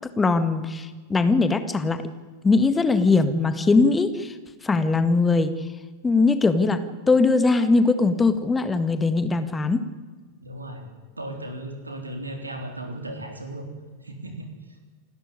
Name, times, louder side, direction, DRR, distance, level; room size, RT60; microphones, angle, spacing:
voice 1, 0.2-2.0 2.4-4.3 4.6-5.5 6.0-6.8 7.1-9.8, left 3 dB, 15° left, 11 dB, 1.8 m, -20 dB
voice 2, 10.4-10.9 11.2-13.7 14.0-14.4, right 1 dB, 80° right, 5 dB, 3.8 m, -35 dB
28.5 x 12.5 x 9.9 m, 1.4 s
figure-of-eight pair, 90°, 0 cm